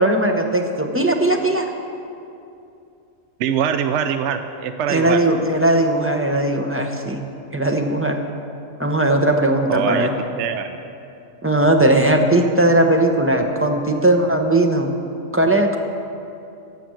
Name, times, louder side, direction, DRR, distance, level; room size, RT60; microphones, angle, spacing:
voice 1, 0.0-1.7 4.9-7.2 7.5-8.2 8.8-10.2 11.4-14.9 15.3-15.8, right 1 dB, 15° right, 3 dB, 0.6 m, -18 dB
voice 2, 3.4-5.2 9.7-10.1 10.4-10.7, right 8 dB, 70° right, 8 dB, 0.8 m, -23 dB
14.5 x 5.8 x 7.6 m, 2.6 s
omnidirectional pair, 1.4 m